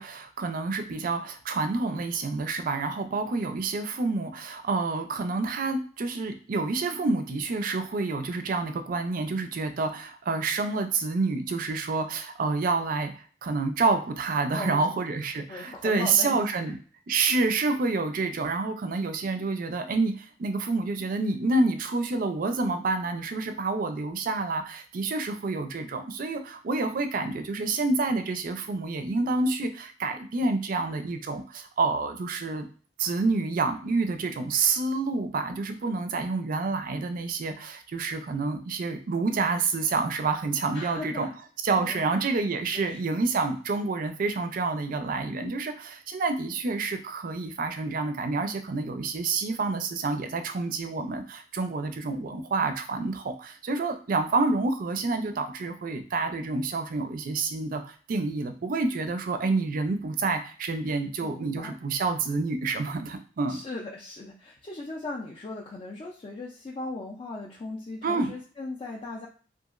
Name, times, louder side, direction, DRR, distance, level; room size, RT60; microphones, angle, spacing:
voice 1, 0.0-13.1 13.4-16.8 17.1-32.7 33.0-41.3 41.6-63.6 68.0-68.3, right 3 dB, 50° right, 7 dB, 0.4 m, -28 dB
voice 2, 14.5-15.2 15.5-16.7 40.7-41.4 41.8-42.0 42.7-43.0 61.2-61.8 63.5-69.3, left 2 dB, 30° left, -3 dB, 0.4 m, -38 dB
2.9 x 2.4 x 2.4 m, 0.42 s
head